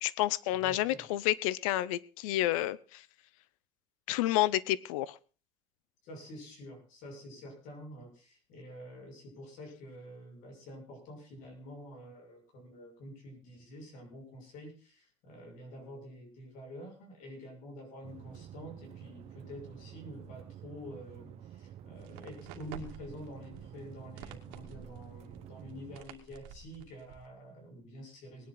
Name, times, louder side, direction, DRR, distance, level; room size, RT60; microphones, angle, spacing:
voice 1, 0.0-3.0 4.1-5.2, left 15 dB, 85° left, 21 dB, 0.8 m, -30 dB
voice 2, 0.6-1.1 6.0-28.5, equal, 50° left, 2 dB, 6.2 m, -48 dB
sound 1, 18.0-26.0, right 10 dB, 40° right, 1.1 m, -49 dB
sound 2, 22.0-27.3, right 8 dB, 65° right, 2.5 m, -51 dB
20.0 x 10.5 x 4.0 m, 0.36 s
cardioid pair, 165°, 17 cm